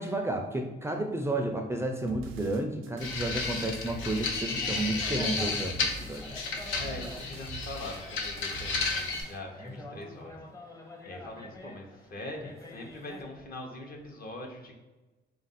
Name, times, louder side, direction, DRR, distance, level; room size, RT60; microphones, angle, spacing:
voice 1, 0.0-6.3, right 1 dB, 15° right, 3 dB, 0.4 m, -32 dB
sound 1, 2.1-9.4, right 3 dB, 90° right, 0.4 m, -45 dB
sound 2, 3.0-9.2, left 4 dB, 85° left, 0.7 m, -33 dB
sound 3, 3.9-13.2, left 1 dB, 15° left, 0.7 m, -47 dB
voice 2, 6.7-10.4 10.7-14.8, left 1 dB, 50° left, 1 dB, 0.9 m, -42 dB
3.7 x 2.5 x 4.1 m, 1.1 s
cardioid pair, 90°, 20 cm